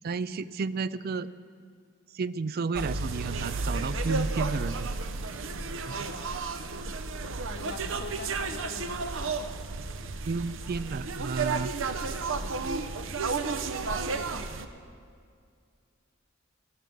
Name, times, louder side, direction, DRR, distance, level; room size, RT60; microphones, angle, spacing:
voice 1, 0.0-1.3 2.1-4.9 5.9-6.0 10.2-11.7, right 4 dB, 50° right, 16 dB, 0.4 m, -32 dB
sound 1, 2.7-14.7, right 3 dB, 70° right, 0.8 m, -32 dB
voice 2, 5.9-6.4 7.5-9.4 12.1-12.6, left 3 dB, 60° left, 8 dB, 0.9 m, -43 dB
14.0 x 13.5 x 5.3 m, 2.2 s
head